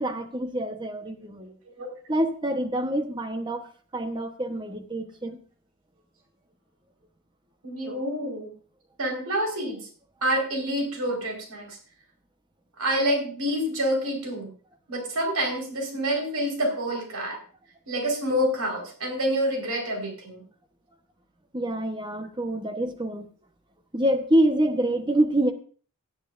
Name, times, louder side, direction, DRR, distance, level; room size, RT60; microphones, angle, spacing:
voice 1, 0.0-1.6 2.1-3.7 3.9-5.4 21.5-23.3 23.9-25.5, right 1 dB, 20° right, 7 dB, 1.1 m, -26 dB
voice 2, 7.6-8.5 9.0-9.9 10.2-11.8 12.8-14.5 14.9-17.4 17.9-20.4, equal, 85° right, 0 dB, 4.6 m, -27 dB
17.0 x 11.0 x 2.6 m, 0.42 s
head